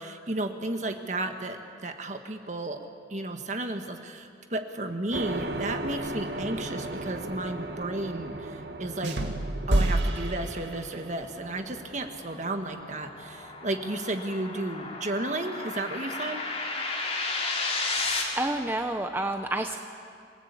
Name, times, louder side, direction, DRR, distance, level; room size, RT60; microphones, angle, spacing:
voice 1, 0.0-2.8 3.1-9.2 9.7-16.5, right 2 dB, 40° right, 6 dB, 1.6 m, -33 dB
sound 1, 5.1-15.2, right 2 dB, 65° right, 1.5 m, -38 dB
sound 2, 9.0-11.2, right 1 dB, 80° right, 1.9 m, -28 dB
sound 3, 11.4-18.2, left 3 dB, 35° left, 3.6 m, -33 dB
voice 2, 18.0-19.8, right 1 dB, 10° right, 5 dB, 0.8 m, -30 dB
27.5 x 18.0 x 8.4 m, 2.4 s
head